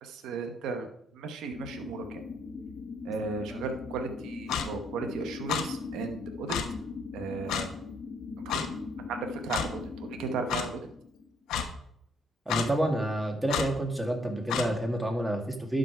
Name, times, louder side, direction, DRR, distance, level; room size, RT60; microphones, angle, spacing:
voice 1, 0.0-0.9 1.1-2.2 3.0-6.6 7.1-7.7 8.4-8.6 9.1-10.8, right 4 dB, 85° right, 6 dB, 1.0 m, -35 dB
sound 1, 1.5-11.4, left 4 dB, 50° left, 0.7 m, -40 dB
Clock, 4.5-4.7 5.5-5.6 6.5-6.6 7.5-7.7 8.5-8.7 9.5-9.7 10.5-10.6 11.5-11.7 12.5-12.7 13.5-13.7 14.5-14.7, left 8 dB, 85° left, 1.0 m, -29 dB
voice 2, 12.5-15.8, right 1 dB, 10° right, 2 dB, 2.1 m, -29 dB
11.5 x 5.1 x 4.6 m, 0.73 s
cardioid pair, 90°, 0 cm